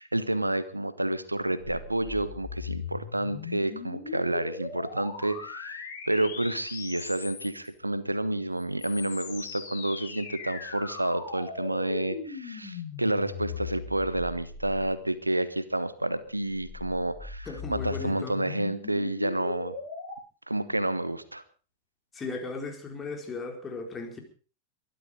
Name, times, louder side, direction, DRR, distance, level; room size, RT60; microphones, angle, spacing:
voice 1, 0.0-19.7 20.5-21.4, right 1 dB, 85° right, 15 dB, 1.3 m, -30 dB
sound 1, 1.6-7.7 8.6-15.2 16.2-20.2, left 6 dB, 50° left, 6.4 m, -39 dB
voice 2, 17.5-18.4 22.1-24.2, left 3 dB, 20° left, 4 dB, 4.6 m, -36 dB
22.5 x 12.0 x 5.2 m, 0.38 s
figure-of-eight pair, 90°, 0 cm